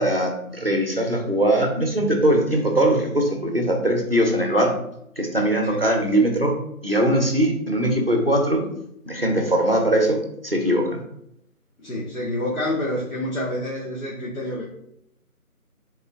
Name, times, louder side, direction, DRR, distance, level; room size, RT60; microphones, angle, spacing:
voice 1, 0.0-4.7 5.2-6.5 6.8-8.7 9.1-11.0, right 1 dB, 40° right, 2 dB, 0.7 m, -21 dB
voice 2, 11.8-14.6, left 1 dB, 65° left, -5 dB, 1.3 m, -28 dB
5.4 x 3.7 x 2.3 m, 0.77 s
figure-of-eight pair, 180°, 44 cm